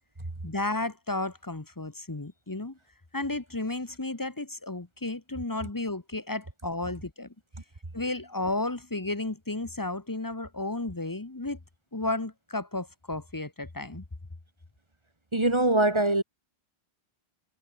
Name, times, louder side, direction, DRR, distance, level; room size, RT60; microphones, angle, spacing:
voice 1, 0.4-2.8 3.1-7.3 7.9-11.6 11.9-14.0, left 2 dB, 20° left, 1.1 m, -33 dB
voice 2, 15.3-16.2, right 2 dB, 25° right, 1.9 m, -22 dB
omnidirectional pair, 1.1 m